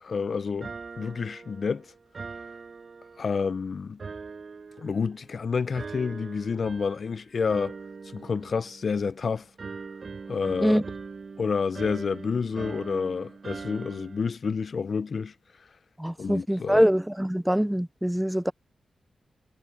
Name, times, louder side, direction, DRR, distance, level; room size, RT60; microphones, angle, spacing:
voice 1, 0.0-1.9 3.2-4.0 4.8-7.8 8.1-9.5 10.3-10.8 11.4-15.3 16.2-16.9, left 5 dB, 55° left, 0.7 m, -29 dB
sound 1, 0.6-3.5 4.0-5.3 5.8-7.1 7.5-9.2 9.6-14.3, right 4 dB, 50° right, 5.3 m, -42 dB
voice 2, 16.0-18.5, equal, 5° right, 0.4 m, -24 dB
wide cardioid pair, 100°, 0 cm